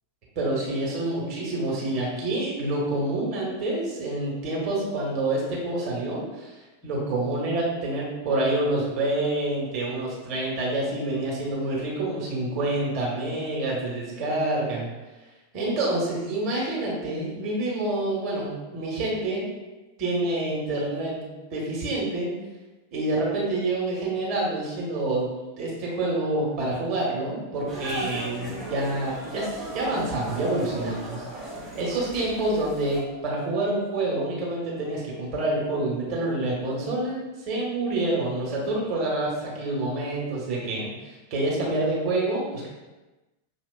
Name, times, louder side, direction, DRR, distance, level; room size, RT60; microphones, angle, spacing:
voice 1, 0.3-6.5 6.8-14.9 15.5-19.5 20.0-22.3 22.9-25.2 25.6-31.2 31.7-42.7, right 2 dB, 40° right, -4 dB, 1.3 m, -27 dB
sound 1, 27.7-33.0, right 1 dB, ahead, 1.2 m, -36 dB
6.2 x 2.7 x 2.2 m, 1.1 s
figure-of-eight pair, 90°, 0 cm